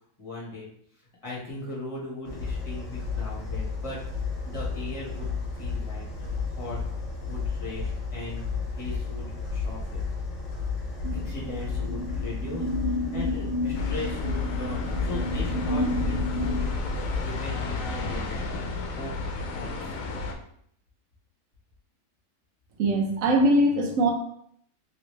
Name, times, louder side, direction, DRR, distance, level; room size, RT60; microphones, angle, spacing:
voice 1, 0.2-0.7 1.2-4.0 4.4-6.9 7.2-8.4 8.7-10.0 11.2-12.7 13.1-18.6 19.0-19.1 19.5-20.0, left 2 dB, 25° left, -6 dB, 1.1 m, -39 dB
sound 1, 2.3-17.3, left 4 dB, 45° left, 1.0 m, -32 dB
sound 2, 11.0-16.6, left 1 dB, 35° right, 0.8 m, -32 dB
sound 3, 13.7-20.3, left 3 dB, 75° left, 1.0 m, -32 dB
voice 2, 22.8-24.1, right 1 dB, 75° right, 2 dB, 1.1 m, -21 dB
3.0 x 2.9 x 3.1 m, 0.68 s
omnidirectional pair, 1.4 m